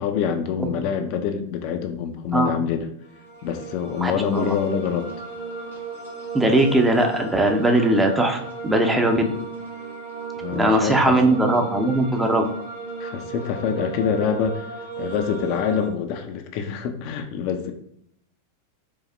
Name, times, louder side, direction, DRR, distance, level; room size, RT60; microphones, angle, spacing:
voice 1, 0.0-2.9 3.4-5.1 10.4-11.3 13.0-14.7 15.0-17.7, left 7 dB, 45° left, 6 dB, 0.4 m, -26 dB
sound 1, 3.0-15.9, right 5 dB, 85° right, 1.2 m, -35 dB
voice 2, 4.0-4.5 6.3-9.3 10.5-12.4, right 1 dB, 10° right, 4 dB, 0.5 m, -20 dB
5.1 x 2.1 x 3.3 m, 0.69 s
figure-of-eight pair, 90°, 0 cm